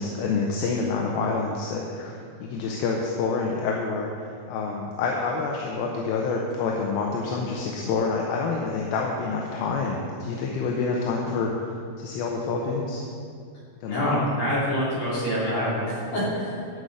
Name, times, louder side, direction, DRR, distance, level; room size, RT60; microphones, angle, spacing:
voice 1, 0.0-11.7 12.0-13.0 13.8-14.2, left 4 dB, 75° left, 0 dB, 2.6 m, -27 dB
voice 2, 13.9-16.7, equal, 55° left, -9 dB, 4.7 m, -26 dB
12.5 x 5.6 x 8.0 m, 2.4 s
omnidirectional pair, 4.5 m